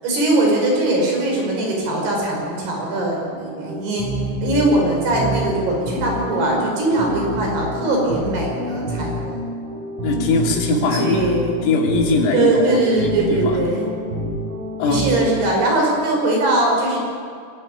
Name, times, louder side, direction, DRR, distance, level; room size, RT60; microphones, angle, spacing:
voice 1, 0.0-4.1 4.4-9.4 10.9-11.5 12.3-13.9 14.8-17.0, right 2 dB, 50° right, -1 dB, 7.3 m, -20 dB
sound 1, 3.3-15.7, equal, 85° right, 8.4 m, -28 dB
voice 2, 10.0-11.2 11.6-13.6 14.8-15.0, left 3 dB, 80° left, 0 dB, 5.6 m, -20 dB
24.0 x 14.5 x 9.8 m, 2.2 s
omnidirectional pair, 5.8 m